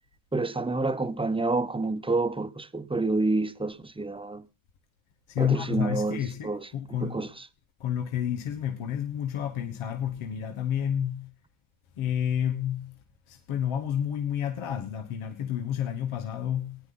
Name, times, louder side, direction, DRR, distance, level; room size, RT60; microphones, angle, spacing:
voice 1, 0.3-4.4 5.4-6.7 7.0-7.3, right 3 dB, 10° right, 0.9 m, -28 dB
voice 2, 5.3-7.3 7.8-11.3 12.0-12.9 13.3-16.8, left 9 dB, 75° left, 1.5 m, -30 dB
19.0 x 9.6 x 3.8 m
cardioid pair, 75°, 49 cm